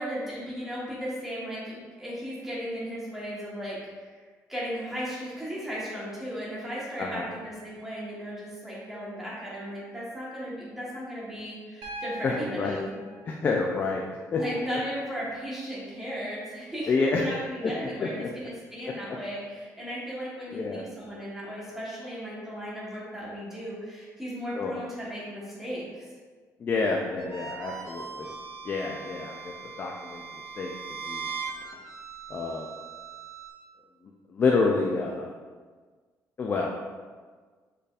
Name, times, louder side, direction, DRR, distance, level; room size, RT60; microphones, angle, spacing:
voice 1, 0.0-4.2 4.5-12.9 14.3-26.0, equal, 5° right, -7 dB, 1.2 m, -36 dB
Piano, 11.8-15.8 17.4-17.5, right 1 dB, 85° right, 0.8 m, -45 dB
voice 2, 12.2-12.8 13.4-14.0 14.3-14.4 16.9-17.7 18.0-18.3 20.5-20.8 24.6-24.7 26.6-28.3 28.6-29.5 29.8-30.2 30.6-30.7 31.1-31.3 32.3-32.7 34.3-35.3 36.4-36.8, left 4 dB, 30° left, 0 dB, 0.3 m, -28 dB
sound 1, 27.2-33.5, right 5 dB, 55° right, 0.8 m, -40 dB
4.9 x 4.5 x 2.4 m, 1.5 s
cardioid pair, 175°, 6 cm